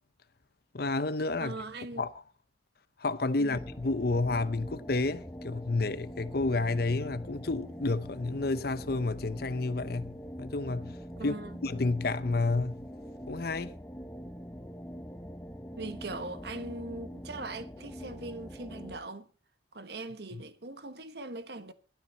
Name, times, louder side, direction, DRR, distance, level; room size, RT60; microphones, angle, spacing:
voice 1, 0.7-1.6 2.0-2.1 3.0-11.0 11.2-12.9 13.3-13.7 20.3-20.4, left 3 dB, 50° left, 0.7 m, -30 dB
voice 2, 1.4-2.0 3.4-3.6 11.2-11.6 15.8-19.3 19.7-21.7, right 2 dB, 55° right, 1.2 m, -40 dB
sound 1, 3.5-19.0, equal, 10° left, 1.0 m, -44 dB
15.5 x 12.5 x 4.3 m
head